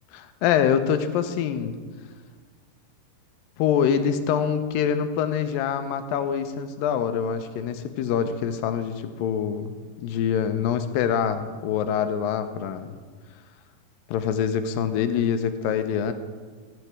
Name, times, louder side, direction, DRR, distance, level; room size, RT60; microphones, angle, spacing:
voice 1, 0.1-1.8 3.6-13.0 14.1-16.1, left 8 dB, 85° left, 9 dB, 2.4 m, -25 dB
13.5 x 9.1 x 4.8 m, 1.6 s
omnidirectional pair, 4.0 m